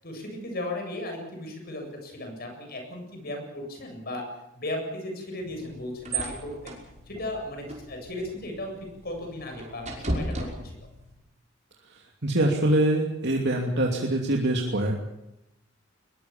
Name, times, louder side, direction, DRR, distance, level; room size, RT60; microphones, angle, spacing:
voice 1, 0.0-4.3 4.5-6.8 7.1-8.8 9.0-10.7, left 1 dB, 50° left, 3 dB, 7.7 m, -36 dB
sound 1, 5.4-11.1, right 2 dB, 35° right, 5.7 m, -36 dB
voice 2, 11.9-14.9, right 1 dB, 60° right, 0 dB, 2.7 m, -24 dB
22.0 x 21.0 x 7.3 m, 0.87 s
head